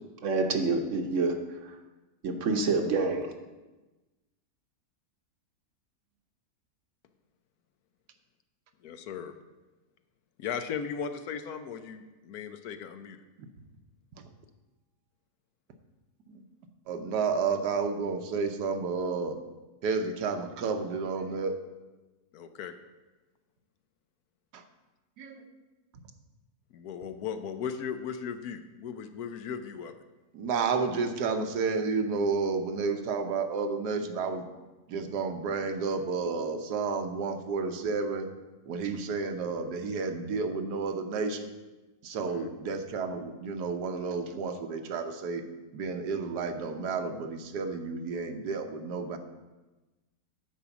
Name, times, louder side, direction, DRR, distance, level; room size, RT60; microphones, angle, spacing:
voice 1, 0.2-1.4 2.2-3.3, right 3 dB, 55° right, 5 dB, 1.1 m, -27 dB
voice 2, 8.8-9.3 10.4-13.2 22.3-22.7 26.7-29.9 42.2-42.5, left 7 dB, 75° left, 9 dB, 1.1 m, -37 dB
voice 3, 16.9-19.4 19.8-21.6 24.5-24.6 25.2-25.5 30.3-34.5 34.9-38.3 38.7-41.5 42.0-45.4 45.7-49.2, right 4 dB, 80° right, 7 dB, 1.4 m, -31 dB
10.0 x 4.6 x 7.0 m, 1.1 s
omnidirectional pair, 1.7 m